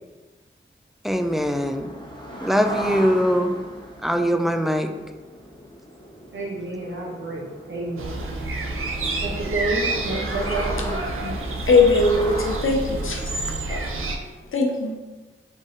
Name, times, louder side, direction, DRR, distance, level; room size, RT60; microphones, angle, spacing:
voice 1, 1.0-1.9 2.4-3.5 4.0-4.9, equal, ahead, 6 dB, 0.3 m, -21 dB
sound 1, 1.1-12.6, equal, 20° left, 1.0 m, -37 dB
voice 2, 6.3-8.2 9.2-11.0, right 2 dB, 70° right, -3 dB, 0.9 m, -29 dB
sound 2, 8.0-14.2, right 2 dB, 90° right, 0.5 m, -29 dB
voice 3, 11.7-13.2 13.7-13.8 14.5-15.0, left 3 dB, 80° left, 1 dB, 0.6 m, -20 dB
3.8 x 2.5 x 3.7 m, 1.2 s
cardioid pair, 45°, 21 cm